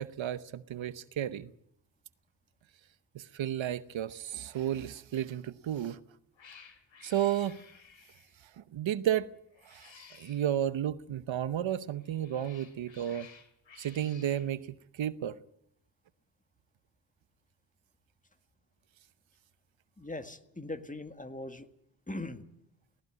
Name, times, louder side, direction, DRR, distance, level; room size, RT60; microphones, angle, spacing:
voice 1, 0.0-1.5 3.1-6.0 7.0-7.6 8.6-9.3 9.7-9.9 10.2-13.3 13.8-14.7 14.9-15.4, right 11 dB, 85° right, 0.9 m, -32 dB
Cat, 5.6-5.9 6.4-8.4 9.5-10.6 11.9-14.5, left 6 dB, 85° left, 2.8 m, -55 dB
voice 2, 20.0-21.7 22.1-22.4, left 2 dB, 15° left, 1.9 m, -40 dB
18.5 x 18.0 x 9.5 m
cardioid pair, 65°, 45 cm